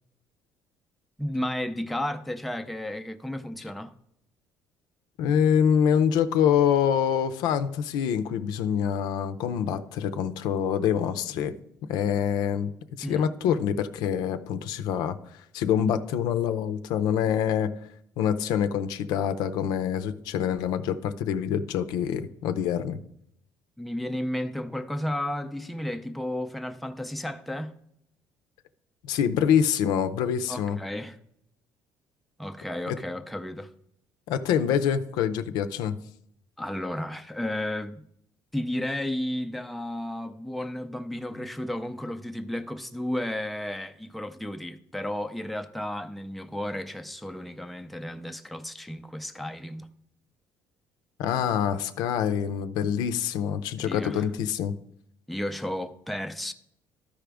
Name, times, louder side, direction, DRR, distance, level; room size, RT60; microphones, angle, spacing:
voice 1, 1.2-3.9 13.0-13.2 23.8-27.7 30.5-31.2 32.4-33.7 36.6-38.0 38.5-49.9 53.8-54.3 55.3-56.5, left 1 dB, ahead, 0.4 m, -33 dB
voice 2, 5.2-11.5 11.9-12.7 13.0-15.2 15.5-17.7 18.2-23.0 29.0-30.8 32.9-33.0 34.3-35.9 51.2-54.7, left 8 dB, 80° left, 0.6 m, -25 dB
13.5 x 5.0 x 3.4 m
cardioid pair, 155°, 7 cm